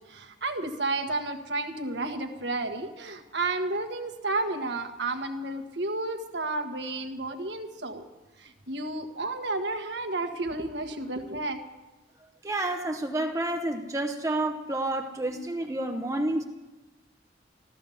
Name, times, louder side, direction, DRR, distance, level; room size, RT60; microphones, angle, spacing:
voice 1, 0.1-8.1 8.4-11.6, right 2 dB, 70° right, 6 dB, 1.4 m, -32 dB
voice 2, 12.4-16.4, right 1 dB, 15° right, 5 dB, 0.8 m, -29 dB
15.0 x 13.0 x 7.1 m, 1.1 s
head